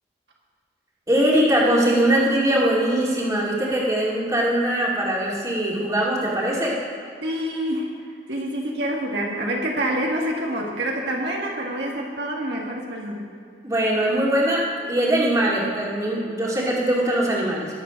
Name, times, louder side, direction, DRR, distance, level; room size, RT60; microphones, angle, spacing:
voice 1, 1.1-6.8 13.6-17.7, right 1 dB, 15° right, -4 dB, 2.5 m, -21 dB
voice 2, 7.2-8.0 8.3-13.3, right 1 dB, 60° right, -1 dB, 1.8 m, -27 dB
21.5 x 8.0 x 5.1 m, 2.4 s
head